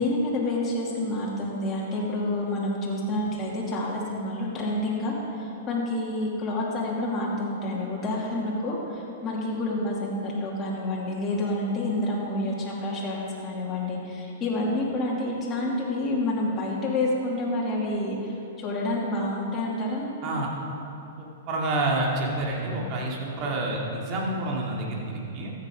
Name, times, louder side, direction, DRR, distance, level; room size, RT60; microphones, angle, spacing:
voice 1, 0.0-20.1, left 1 dB, 25° left, -5 dB, 2.7 m, -28 dB
voice 2, 21.2-25.5, right 2 dB, 40° right, -2 dB, 2.7 m, -28 dB
14.0 x 8.5 x 5.2 m, 2.9 s
hypercardioid pair, 120°, 0 cm